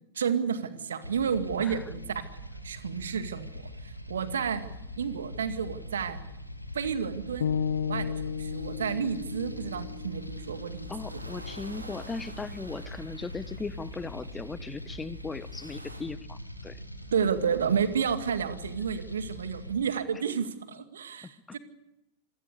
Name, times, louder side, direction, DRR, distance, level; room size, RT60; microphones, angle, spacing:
voice 1, 0.1-2.2 2.6-4.7 5.0-6.2 6.7-11.2 17.0-21.6, right 7 dB, 65° right, 10 dB, 2.1 m, -31 dB
sound 1, 1.0-19.7, equal, 90° left, 2.3 m, -42 dB
sound 2, 7.4-11.5, left 7 dB, 65° left, 0.8 m, -34 dB
sound 3, 8.5-16.0, right 1 dB, 85° right, 3.7 m, -52 dB
voice 2, 10.9-16.8 21.2-21.6, left 4 dB, 15° left, 18 dB, 1.1 m, -38 dB
27.0 x 22.0 x 6.8 m, 0.90 s
figure-of-eight pair, 90°, 0 cm